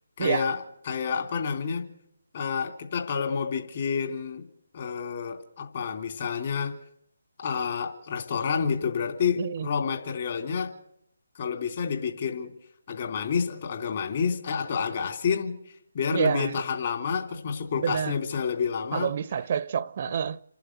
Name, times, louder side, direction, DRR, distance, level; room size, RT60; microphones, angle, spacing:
voice 1, 0.2-1.8 2.3-4.4 4.7-6.8 7.4-10.7 11.4-12.5 12.9-15.5 15.9-19.1, left 6 dB, 45° left, 3.4 m, -29 dB
voice 2, 9.4-9.7 16.1-16.6 17.8-18.2 18.9-20.4, right 7 dB, 40° right, 0.7 m, -28 dB
28.0 x 11.5 x 8.0 m
figure-of-eight pair, 145°, 0 cm